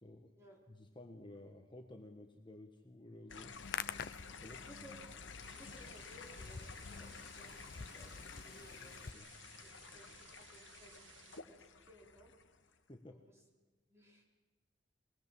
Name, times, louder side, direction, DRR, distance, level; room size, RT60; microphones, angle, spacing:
voice 1, 0.0-0.3 0.7-3.6 4.3-4.7 9.1-9.3 12.9-13.2, left 1 dB, 25° left, 4 dB, 1.4 m, -53 dB
sound 1, 3.3-12.7, left 5 dB, 90° left, 1.5 m, -53 dB
Hands, 3.4-9.1, left 6 dB, 55° left, 0.7 m, -48 dB
voice 2, 4.5-5.1 5.6-9.0 9.6-12.3 13.1-13.4 13.9-14.2, equal, 15° right, -2 dB, 5.0 m, -60 dB
sound 2, 5.4-11.4, right 7 dB, 90° right, 1.6 m, -61 dB
23.0 x 20.5 x 7.7 m, 1.2 s
head